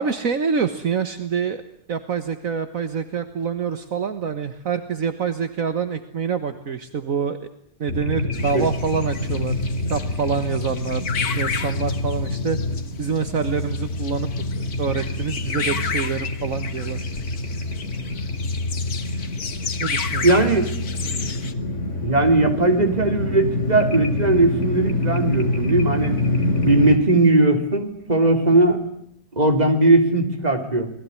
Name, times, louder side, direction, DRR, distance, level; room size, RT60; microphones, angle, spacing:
voice 1, 0.0-1.6 1.9-7.5 7.8-9.6 9.9-11.1 11.4-12.6 13.0-14.3 14.6-17.0 19.8-20.3, right 6 dB, 65° right, 10 dB, 1.8 m, -26 dB
sound 1, 7.9-27.0, left 2 dB, 50° left, 4.2 m, -26 dB
sound 2, 8.3-21.5, left 6 dB, 85° left, 2.1 m, -33 dB
voice 2, 20.2-20.7 22.0-26.2 26.6-28.8 29.3-30.9, right 2 dB, 25° right, 5 dB, 3.6 m, -18 dB
28.5 x 21.0 x 9.8 m, 0.66 s
omnidirectional pair, 1.6 m